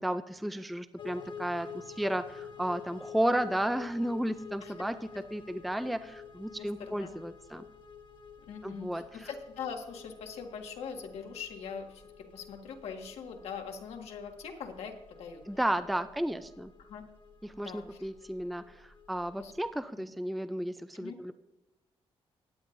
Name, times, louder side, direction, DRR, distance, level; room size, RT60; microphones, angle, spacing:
voice 1, 0.0-7.6 8.6-9.3 15.5-16.7 17.4-21.3, right 1 dB, ahead, 11 dB, 0.3 m, -33 dB
sound 1, 1.0-19.7, left 6 dB, 50° left, 1.0 m, -50 dB
voice 2, 6.6-7.1 8.5-15.4 16.8-17.0 17.6-17.8 19.4-19.5 20.0-20.1 20.9-21.2, left 6 dB, 85° left, 3 dB, 1.6 m, -42 dB
16.5 x 10.0 x 2.6 m, 0.95 s
wide cardioid pair, 165°, 10 cm